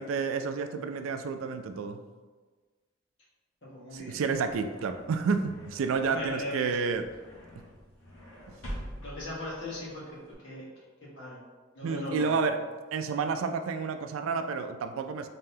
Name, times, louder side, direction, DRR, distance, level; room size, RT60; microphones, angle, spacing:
voice 1, 0.0-2.0 3.9-7.0 11.8-12.6 12.9-15.3, right 5 dB, 80° right, 9 dB, 0.3 m, -30 dB
voice 2, 3.6-4.2 6.1-6.7 9.0-10.6 11.0-11.4 11.7-12.4, left 1 dB, 60° left, -6 dB, 1.4 m, -38 dB
sound 1, 4.0-10.3, equal, 80° left, 1.2 m, -46 dB
3.8 x 3.6 x 2.8 m, 1.4 s
head